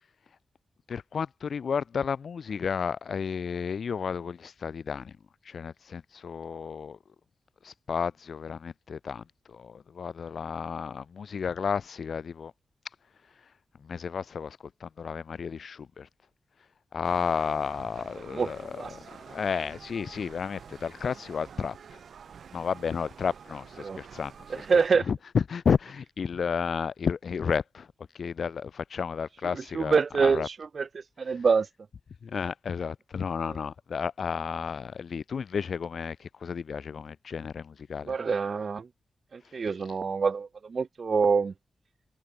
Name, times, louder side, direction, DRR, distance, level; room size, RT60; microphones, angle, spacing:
voice 1, 0.9-5.1 5.4-7.0 7.6-12.5 13.8-16.1 16.9-19.0 19.3-22.0 22.5-24.7 25.1-27.9 28.1-30.5 32.2-38.1, left 6 dB, 60° left, 1.0 m, -32 dB
sound 1, 17.0-24.9, right 7 dB, 75° right, 4.5 m, -48 dB
voice 2, 18.3-18.9 23.8-24.0 24.5-25.1 29.5-31.7 38.1-38.9 39.3-41.5, right 5 dB, 45° right, 2.2 m, -26 dB
wide cardioid pair, 165°, 0 cm